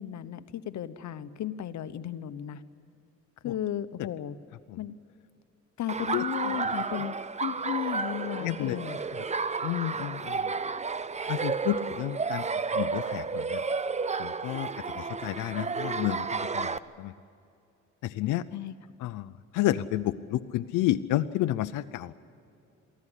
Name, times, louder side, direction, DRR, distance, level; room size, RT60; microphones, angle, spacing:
voice 1, 0.0-2.6 3.4-4.4 4.8-4.9 5.8-9.2 18.5-18.7, left 11 dB, 70° left, 12 dB, 1.1 m, -35 dB
Laughter, 5.9-16.8, right 4 dB, 25° right, 0.8 m, -32 dB
voice 2, 6.1-6.7 8.4-8.8 9.6-10.5 11.3-13.6 14.2-17.1 18.0-18.4 19.0-22.1, left 14 dB, 90° left, 10 dB, 0.7 m, -31 dB
23.5 x 15.0 x 10.0 m, 2.6 s
cardioid pair, 90°, 30 cm